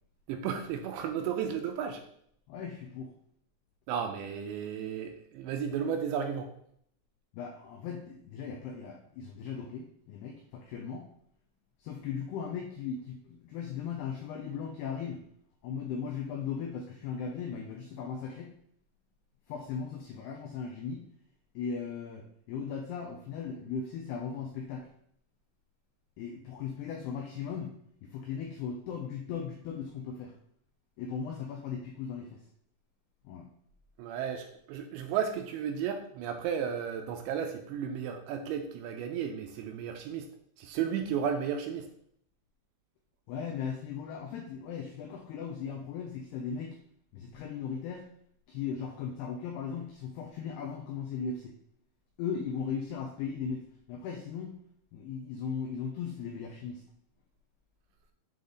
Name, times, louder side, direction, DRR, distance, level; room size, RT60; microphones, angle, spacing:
voice 1, 0.3-2.0 3.9-6.5 34.0-40.3 40.6-41.9, right 8 dB, 85° right, 5 dB, 2.7 m, -33 dB
voice 2, 2.5-3.1 7.3-11.0 11.8-15.2 15.6-18.5 19.5-21.1 21.6-24.9 26.2-27.7 28.0-30.3 31.0-32.4 33.2-33.5 43.3-46.8 47.1-48.0 48.5-51.5 52.2-54.6 54.9-56.8, left 6 dB, 85° left, 2 dB, 2.3 m, -37 dB
7.6 x 3.6 x 3.9 m, 0.67 s
omnidirectional pair, 5.4 m